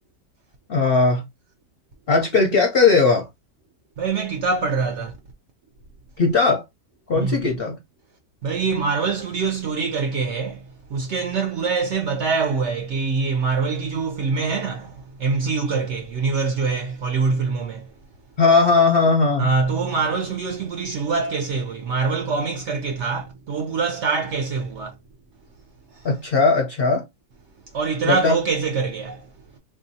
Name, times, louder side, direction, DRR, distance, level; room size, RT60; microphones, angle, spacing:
voice 1, 0.7-1.2 2.1-3.3 6.2-6.6 7.1-7.8 18.4-19.5 26.0-27.0 28.1-28.4, left 4 dB, 55° left, 0.6 m, -18 dB
voice 2, 4.0-5.2 7.1-7.4 8.4-17.9 19.4-24.9 25.9-26.1 27.7-29.6, right 4 dB, 65° right, 0.7 m, -24 dB
3.5 x 2.6 x 2.6 m
omnidirectional pair, 1.6 m